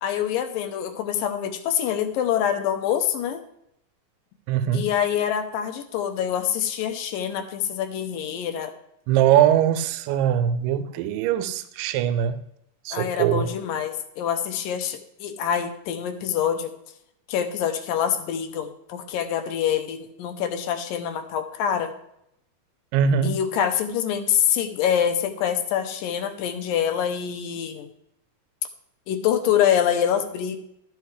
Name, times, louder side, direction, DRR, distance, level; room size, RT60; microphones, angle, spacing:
voice 1, 0.0-3.4 4.7-8.7 12.9-16.7 17.3-21.9 23.2-27.9 29.1-30.6, left 9 dB, 85° left, 2.5 m, -25 dB
voice 2, 4.5-4.9 9.1-12.4 12.9-13.5 22.9-23.4, right 9 dB, 85° right, 2.2 m, -21 dB
13.0 x 8.1 x 3.3 m
omnidirectional pair, 3.9 m